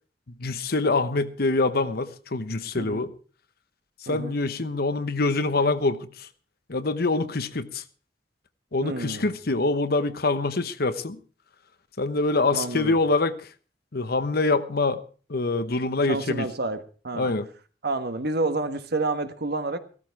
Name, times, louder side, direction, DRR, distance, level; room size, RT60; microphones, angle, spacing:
voice 1, 0.4-3.1 4.0-6.3 6.7-7.8 8.7-11.2 12.0-13.4 13.9-15.0 15.3-16.5 17.1-17.5, left 3 dB, 60° left, 1.0 m, -25 dB
voice 2, 4.1-4.4 8.8-9.3 12.5-12.9 16.1-17.3 17.8-19.8, right 2 dB, 60° right, 1.4 m, -29 dB
16.0 x 13.5 x 4.7 m
head